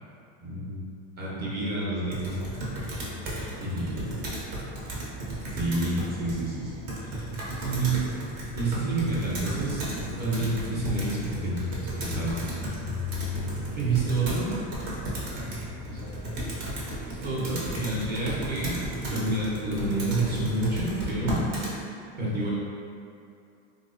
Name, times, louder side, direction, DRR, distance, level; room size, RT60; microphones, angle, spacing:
voice 1, 0.4-0.8 1.2-2.4 3.6-4.1 5.5-7.2 7.6-7.9 8.6-12.3 13.8-14.5 15.9-16.0 17.2-18.7 19.1-21.4 22.2-22.5, right 2 dB, 25° right, -8 dB, 0.8 m, -29 dB
Computer keyboard, 2.1-21.8, equal, 60° right, 1.0 m, -34 dB
voice 2, 2.9-4.3 7.3-7.6 13.9-14.1 15.0-16.8 17.1-17.3, left 3 dB, 35° left, -5 dB, 0.4 m, -48 dB
3.0 x 2.1 x 3.7 m, 2.6 s
supercardioid pair, 150°, 38 cm